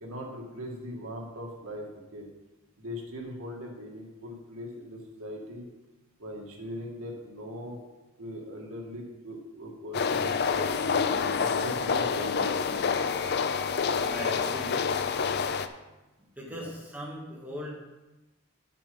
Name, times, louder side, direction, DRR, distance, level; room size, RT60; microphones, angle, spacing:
voice 1, 0.0-2.3 2.8-5.7 6.2-7.8 8.2-10.7 11.4-12.5 16.5-16.7, equal, 90° right, 0 dB, 1.9 m, -40 dB
sound 1, 9.9-15.7, left 5 dB, 50° left, 0.4 m, -27 dB
voice 2, 14.1-14.8 16.4-17.7, equal, 5° right, -4 dB, 2.1 m, -38 dB
7.4 x 6.8 x 5.3 m, 1.1 s
head